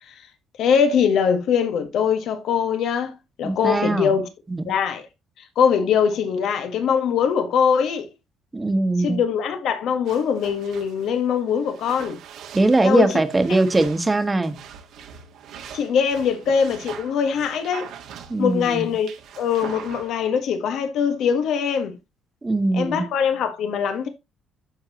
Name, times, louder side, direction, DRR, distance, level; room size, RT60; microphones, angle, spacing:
voice 1, 0.6-3.1 3.4-4.3 4.6-5.1 5.5-8.1 9.0-12.2 12.8-13.2 15.7-17.9 18.4-19.1 19.4-22.0 22.7-24.1, left 7 dB, 70° left, 1.6 m, -22 dB
voice 2, 3.4-4.1 4.5-4.7 8.5-9.2 12.5-14.6 18.3-18.9 22.4-23.1, right 2 dB, 15° right, 1.3 m, -21 dB
sound 1, 10.1-20.1, right 8 dB, 75° right, 1.6 m, -42 dB
10.0 x 7.2 x 3.0 m
cardioid pair, 115°, 0 cm